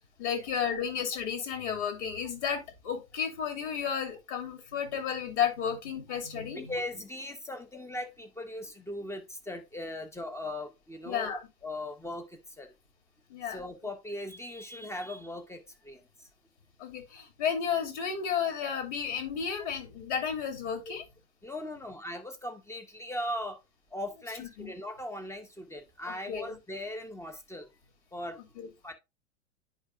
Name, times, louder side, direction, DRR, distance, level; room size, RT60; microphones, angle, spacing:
voice 1, 0.2-6.7 11.0-11.4 13.3-13.6 16.8-21.0 24.4-24.7 26.3-26.6 28.6-28.7, left 7 dB, 55° left, 2.8 m, -32 dB
voice 2, 6.5-12.7 13.5-16.3 20.9-21.0 21.4-23.6 23.9-27.7 28.1-28.4 28.8-28.9, left 1 dB, 5° left, 1.3 m, -39 dB
10.5 x 5.0 x 2.5 m
figure-of-eight pair, 95°, 40 cm